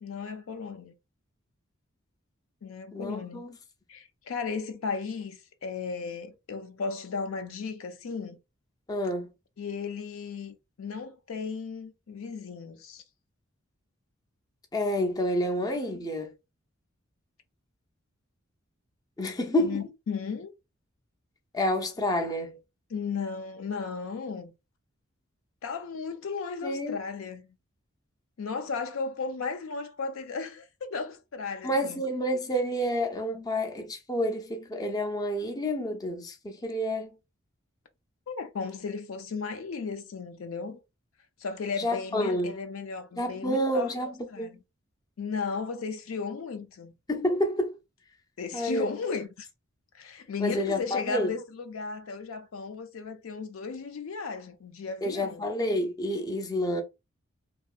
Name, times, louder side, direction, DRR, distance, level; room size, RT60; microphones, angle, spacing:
voice 1, 0.0-0.9 2.6-3.4 3.9-8.4 9.6-13.0 19.6-20.5 22.9-24.5 25.6-27.5 28.4-32.0 38.3-40.8 41.4-44.6 45.2-47.0 48.4-49.5 49.9-55.5, left 5 dB, 80° left, 0.5 m, -35 dB
voice 2, 2.9-3.5 8.9-9.3 14.7-16.4 19.2-19.8 21.5-22.6 26.6-27.0 31.6-37.1 41.8-42.5 43.2-44.5 47.1-47.8 48.5-48.9 50.4-51.3 55.0-56.8, equal, 20° left, 0.4 m, -29 dB
2.7 x 2.3 x 2.3 m
head